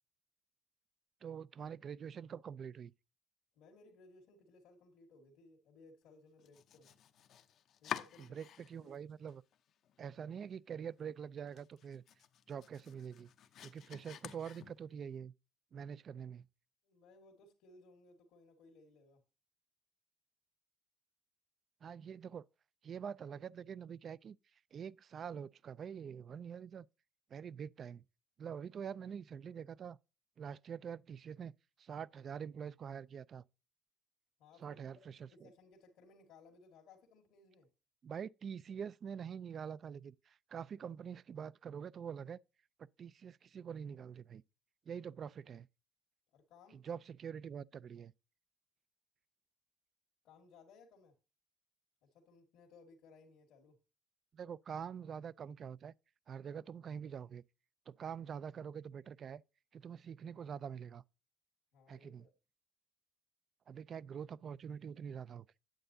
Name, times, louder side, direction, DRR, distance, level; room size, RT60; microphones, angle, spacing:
voice 1, 1.2-2.9 8.2-9.4 10.0-12.0 12.5-13.3 13.6-15.3 15.7-16.5 21.8-22.4 22.8-24.4 24.7-26.9 27.3-28.0 28.4-30.0 30.4-31.5 31.8-33.4 34.6-35.5 38.0-42.4 42.8-44.4 44.9-45.7 46.7-48.1 54.3-55.9 56.3-57.4 57.9-59.4 59.7-61.0 61.9-62.3 63.7-65.4, right 7 dB, 50° right, 0.3 m, -45 dB
voice 2, 3.5-6.9 7.8-8.3 8.8-8.9 16.8-19.2 34.4-37.7 46.3-46.8 50.2-51.1 52.0-53.8 61.7-62.3, left 3 dB, 85° left, 1.6 m, -62 dB
Domestic sounds home sounds, 6.4-9.0 9.3-10.0 10.4-10.5 10.9-11.0 11.4-15.1, left 10 dB, 65° left, 0.6 m, -49 dB
8.9 x 7.8 x 2.7 m
cardioid pair, 90°, 0 cm